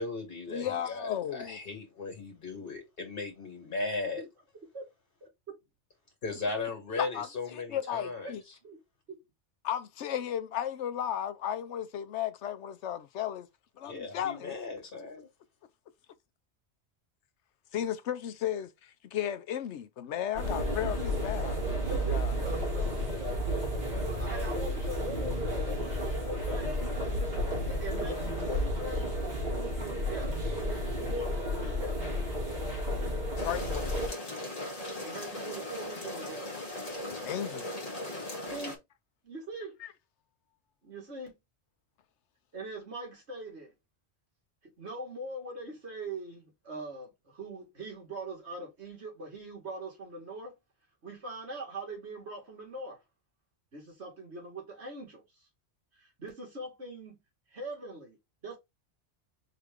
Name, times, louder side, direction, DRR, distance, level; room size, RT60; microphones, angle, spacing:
voice 1, 0.0-4.2 6.2-8.6 13.8-15.3, left 3 dB, 55° left, 2.2 m, -37 dB
voice 2, 0.5-1.6 7.0-7.3 7.7-8.4 9.6-13.5 13.8-14.5 17.7-21.6 21.9-22.4 33.4-34.2 37.1-37.8 39.8-39.9, left 10 dB, 85° left, 1.0 m, -34 dB
voice 3, 5.2-5.6 8.6-8.8 9.1-9.2 21.9-26.8 27.7-29.2 29.5-30.5 31.0-32.2 35.0-36.5 38.5-38.8 39.2-39.8 40.8-41.3 42.5-43.7 44.8-50.5 51.0-53.0 53.7-55.5 56.0-57.2 57.5-58.2 58.4-58.6, right 2 dB, 70° right, 2.2 m, -42 dB
sound 1, 20.3-34.1, equal, 40° right, 2.2 m, -32 dB
sound 2, 33.4-38.8, left 1 dB, 35° left, 1.6 m, -38 dB
4.4 x 3.4 x 3.5 m
omnidirectional pair, 1.2 m